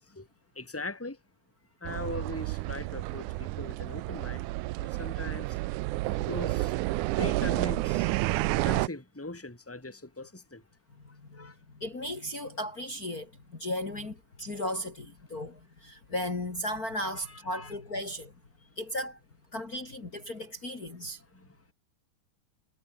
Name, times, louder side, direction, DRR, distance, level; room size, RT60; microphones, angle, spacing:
voice 1, 0.6-1.2 1.8-4.4 5.0-5.5 6.2-6.7 7.2-8.1 8.6-10.6 11.3-11.5 17.2-17.7 21.3-21.4, left 2 dB, 5° left, 3.5 m, -40 dB
sound 1, 1.8-8.9, right 20 dB, 85° right, 2.0 m, -30 dB
voice 2, 11.1-11.5 11.8-18.3 18.8-19.2 19.5-21.2, left 1 dB, 30° left, 3.2 m, -36 dB
omnidirectional pair, 3.5 m